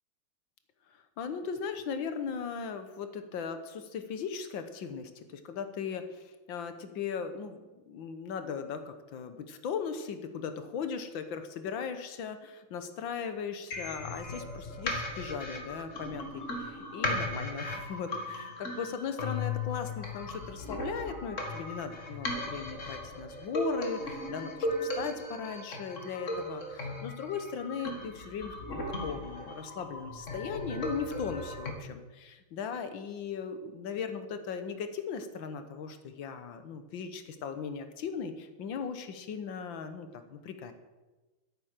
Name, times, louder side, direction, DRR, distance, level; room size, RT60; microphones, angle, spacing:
voice 1, 1.2-40.7, left 6 dB, 65° left, 9 dB, 1.8 m, -38 dB
sound 1, 13.7-31.7, left 2 dB, 35° left, 2.0 m, -37 dB
13.0 x 8.9 x 6.6 m, 1.2 s
omnidirectional pair, 2.4 m